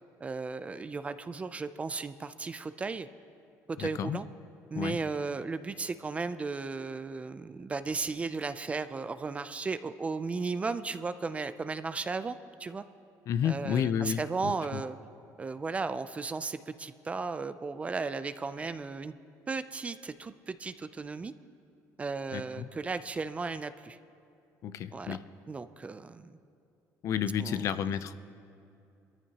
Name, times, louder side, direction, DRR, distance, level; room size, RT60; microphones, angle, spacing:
voice 1, 0.2-3.1 3.7-4.3 4.7-12.9 13.4-15.0 15.4-19.1 19.5-21.3 22.0-24.0 24.9-25.2 25.5-26.4 27.4-27.8, right 4 dB, 20° right, 12 dB, 0.4 m, -35 dB
voice 2, 3.8-4.2 4.8-5.0 13.3-14.8 22.3-22.7 24.6-25.2 27.0-28.2, left 9 dB, 55° left, 13 dB, 0.5 m, -31 dB
22.0 x 14.0 x 2.9 m, 2.6 s
cardioid pair, 135°, 6 cm